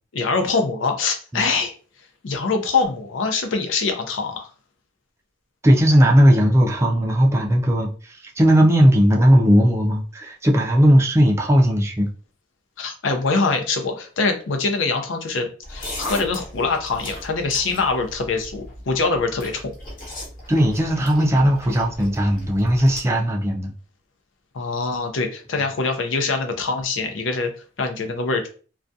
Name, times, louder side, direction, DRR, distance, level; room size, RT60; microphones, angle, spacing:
voice 1, 0.1-1.7 2.2-4.5 12.8-19.7 24.5-27.5 27.8-28.5, left 4 dB, 85° left, 0.5 m, -24 dB
voice 2, 5.6-12.1 20.5-23.7, equal, 15° right, 0.4 m, -17 dB
sound 1, 15.6-23.0, left 1 dB, 45° left, 0.9 m, -37 dB
2.3 x 2.2 x 2.6 m
head